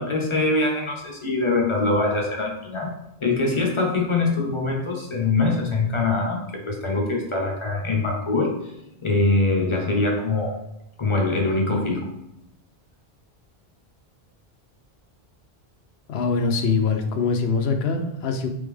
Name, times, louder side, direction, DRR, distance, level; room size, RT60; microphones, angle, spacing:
voice 1, 0.0-2.9 3.2-8.5 9.0-10.6 11.0-12.0, left 3 dB, 30° left, 0 dB, 0.8 m, -23 dB
voice 2, 16.1-18.5, left 4 dB, 80° left, 6 dB, 0.8 m, -23 dB
3.5 x 3.4 x 3.4 m, 0.85 s
omnidirectional pair, 1.1 m